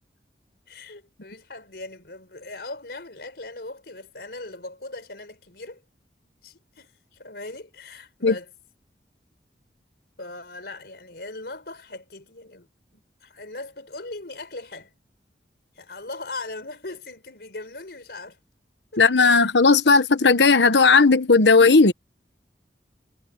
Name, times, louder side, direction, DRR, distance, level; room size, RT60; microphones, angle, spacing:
voice 1, 0.7-5.8 6.4-8.5 10.2-12.7 12.9-14.9 15.8-18.4 18.9-19.4, left 2 dB, 65° left, 4.4 m, -39 dB
voice 2, 19.0-21.9, left 4 dB, 90° left, 1.1 m, -16 dB
head